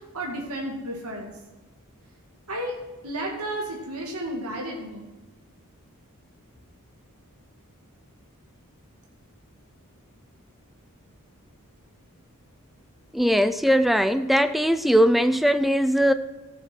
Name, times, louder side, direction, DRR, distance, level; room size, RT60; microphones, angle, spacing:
voice 1, 0.1-1.3 2.5-2.7 3.0-5.1, right 1 dB, 80° right, 2.0 m, -32 dB
voice 2, 13.1-16.1, equal, ahead, 0.4 m, -20 dB
14.5 x 7.1 x 4.5 m
head